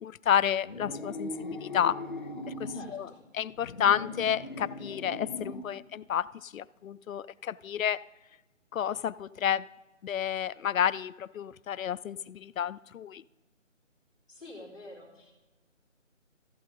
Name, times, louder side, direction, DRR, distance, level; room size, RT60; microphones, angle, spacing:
voice 1, 0.0-2.0 2.6-3.1 3.3-8.0 8.7-9.7 10.0-13.2, left 9 dB, 90° left, 18 dB, 0.5 m, -30 dB
sound 1, 0.6-2.9 3.5-5.7, left 2 dB, 40° left, 1.2 m, -39 dB
voice 2, 2.7-3.2 14.3-15.3, left 2 dB, ahead, -20 dB, 1.5 m, -47 dB
14.0 x 8.4 x 3.8 m, 1.1 s
figure-of-eight pair, 175°, 39 cm